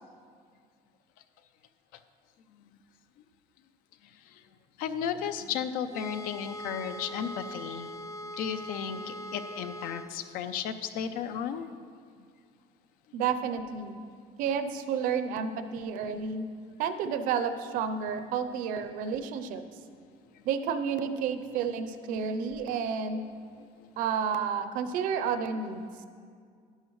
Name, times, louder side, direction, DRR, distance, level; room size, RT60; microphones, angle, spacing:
voice 1, 4.8-7.9 8.4-11.7 15.7-15.8 21.5-21.7 22.1-22.3 22.6-22.8 23.1-23.3, left 8 dB, 75° left, 10 dB, 0.6 m, -34 dB
sound 1, 5.9-10.1, equal, 25° left, 0.5 m, -41 dB
voice 2, 13.1-14.0 14.4-16.5 16.8-19.6 20.5-23.2 24.0-25.9, right 6 dB, 65° right, 9 dB, 0.6 m, -31 dB
12.0 x 10.5 x 3.2 m, 2.1 s
cardioid pair, 180°, 15 cm